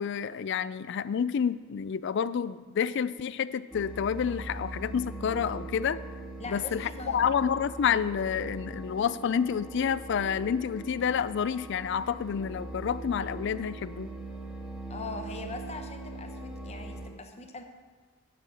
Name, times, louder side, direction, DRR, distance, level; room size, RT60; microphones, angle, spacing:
voice 1, 0.0-6.0 6.5-14.1, left 7 dB, 55° left, 17 dB, 0.3 m, -29 dB
sound 1, 3.7-17.1, right 2 dB, ahead, 1.2 m, -41 dB
voice 2, 6.4-7.3 14.9-17.6, left 3 dB, 30° left, 5 dB, 0.9 m, -41 dB
10.0 x 6.3 x 7.0 m, 1.4 s
head